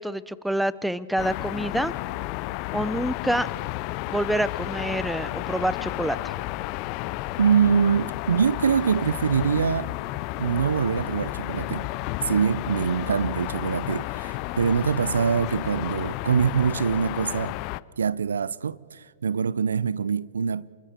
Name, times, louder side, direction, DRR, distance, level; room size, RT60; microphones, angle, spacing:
voice 1, 0.0-1.9 2.7-3.5 4.1-6.3, right 1 dB, ahead, 0.6 m, -27 dB
sound 1, 1.2-17.8, left 19 dB, 40° left, 0.5 m, -32 dB
voice 2, 7.4-9.9 10.4-11.9 12.3-17.5 18.0-20.7, right 6 dB, 85° right, 0.5 m, -24 dB
28.5 x 23.5 x 4.4 m
hypercardioid pair, 125°, 0 cm